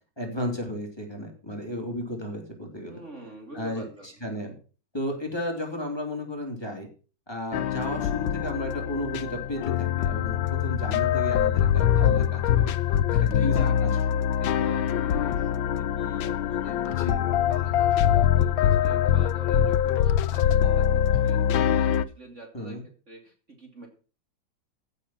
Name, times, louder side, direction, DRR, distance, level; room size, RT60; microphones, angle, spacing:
voice 1, 0.2-3.0 3.5-3.9 4.2-4.5 4.9-6.9 7.3-12.7 13.1-13.5 17.0-17.2 22.5-22.8, left 1 dB, 10° left, 1 dB, 3.3 m, -33 dB
voice 2, 2.9-4.1 12.9-22.8 23.1-23.9, right 1 dB, 35° right, 2 dB, 3.1 m, -45 dB
sound 1, 7.5-22.0, left 10 dB, 80° left, 1.5 m, -23 dB
15.5 x 7.1 x 5.9 m, 0.37 s
omnidirectional pair, 2.1 m